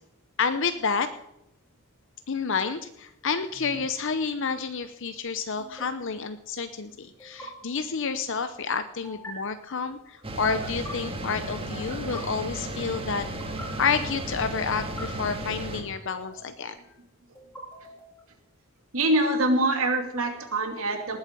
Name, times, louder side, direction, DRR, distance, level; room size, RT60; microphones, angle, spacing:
voice 1, 0.4-1.1 2.3-16.7, left 5 dB, 60° left, 10 dB, 0.7 m, -29 dB
sound 1, 3.5-3.8 5.6-5.9 7.2-7.5 9.0-9.3 10.4-10.9 11.7-12.2 13.2-13.7 14.6-15.1 16.1-16.7 17.4-18.2, left 2 dB, 10° left, 4.0 m, -44 dB
sound 2, 10.2-15.8, right 1 dB, 25° right, 1.8 m, -34 dB
voice 2, 18.9-21.2, right 1 dB, 70° right, 4 dB, 2.7 m, -25 dB
19.0 x 8.2 x 6.7 m, 0.85 s
head